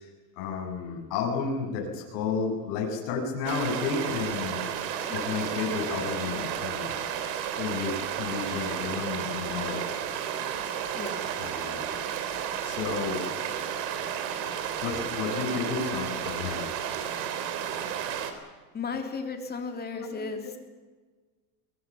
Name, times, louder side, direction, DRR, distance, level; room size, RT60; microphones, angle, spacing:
voice 1, 0.4-4.6 5.1-7.0 7.5-9.8 11.4-11.8 12.6-13.2 14.8-16.6 16.9-17.2 19.9-20.2, left 5 dB, 65° left, 0 dB, 7.6 m, -32 dB
sound 1, 3.5-18.3, right 9 dB, 80° right, 3.6 m, -32 dB
voice 2, 5.1-5.4 11.0-11.2 18.7-20.6, left 4 dB, 20° left, 5 dB, 2.9 m, -35 dB
22.5 x 21.5 x 7.5 m, 1.4 s
supercardioid pair, 150°, 50 cm